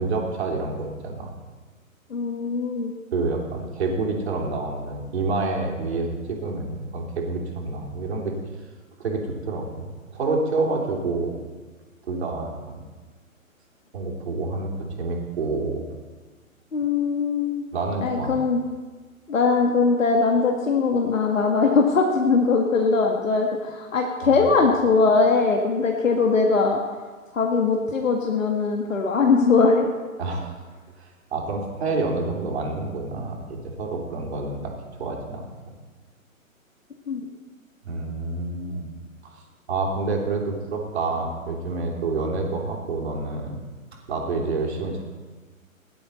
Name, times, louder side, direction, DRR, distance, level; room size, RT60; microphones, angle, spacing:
voice 1, 0.0-1.3 3.1-8.3 9.0-11.3 12.0-12.7 13.9-14.7 15.0-15.9 17.7-18.3 24.2-24.5 30.2-30.6 31.0-34.7 35.0-35.5 37.8-38.9 39.2-43.6 44.1-45.0, right 3 dB, 50° right, 0 dB, 3.3 m, -28 dB
voice 2, 2.1-2.9 16.7-17.6 18.0-18.6 19.3-26.8 27.3-30.0 37.1-37.3, left 4 dB, 65° left, 2 dB, 1.7 m, -21 dB
17.5 x 11.5 x 4.2 m, 1.3 s
figure-of-eight pair, 130°, 41 cm